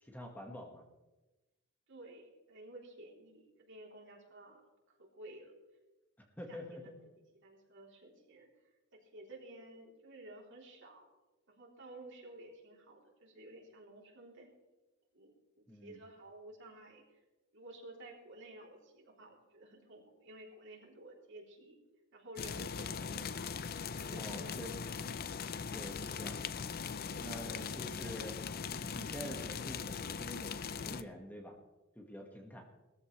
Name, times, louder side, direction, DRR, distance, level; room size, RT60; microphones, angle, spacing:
voice 1, 0.0-0.8 6.4-7.0 15.7-16.0 24.1-24.9 25.7-26.6 27.2-28.4 28.7-31.6 31.9-32.7, equal, 10° left, 2 dB, 1.6 m, -47 dB
voice 2, 1.9-4.6 4.9-5.5 6.5-6.9 7.4-8.5 8.9-11.1 11.5-14.5 15.1-17.0 17.5-21.8 22.1-23.3 23.9-24.5 27.2-27.5, right 1 dB, 60° right, -1 dB, 3.3 m, -53 dB
sound 1, 22.4-31.0, left 6 dB, 45° left, 0.5 m, -40 dB
19.0 x 14.0 x 3.2 m, 1.1 s
head